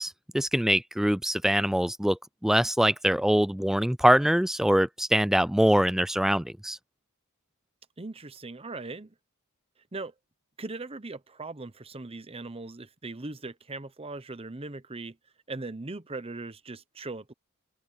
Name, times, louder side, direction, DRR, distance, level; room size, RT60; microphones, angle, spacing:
voice 1, 0.0-6.8, equal, ahead, 0.3 m, -24 dB
voice 2, 8.0-9.1 9.9-10.1 10.6-15.2 15.5-17.3, right 3 dB, 25° right, 0.9 m, -39 dB
head